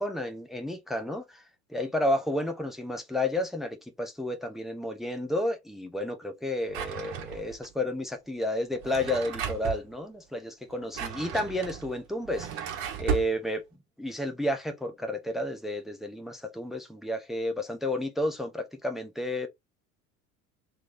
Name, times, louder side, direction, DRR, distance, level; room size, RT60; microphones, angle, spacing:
voice 1, 0.0-1.4 1.7-13.6 14.0-19.5, left 1 dB, ahead, 0.5 m, -31 dB
Drawer open or close, 6.7-7.7 8.7-9.8 10.7-13.3, right 7 dB, 45° right, 0.9 m, -34 dB
3.0 x 2.6 x 4.2 m
figure-of-eight pair, 70°, 47 cm